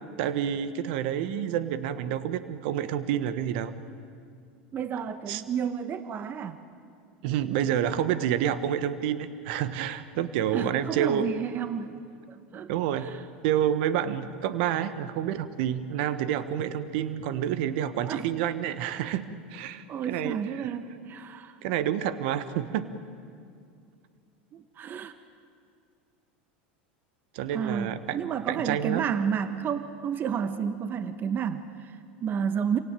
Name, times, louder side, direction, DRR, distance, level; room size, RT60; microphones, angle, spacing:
voice 1, 0.2-3.7 5.3-5.4 7.2-11.3 12.7-13.1 13.4-20.7 21.6-22.9 27.3-28.2 28.5-29.0, right 10 dB, 65° right, 12 dB, 1.3 m, -28 dB
voice 2, 4.7-6.6 10.5-11.9 12.3-12.7 13.0-13.2 18.0-18.2 19.9-21.6 24.5-25.1 27.5-32.8, right 7 dB, 35° right, 11 dB, 1.2 m, -31 dB
27.0 x 17.5 x 9.1 m, 2.4 s
hypercardioid pair, 105°, 6 cm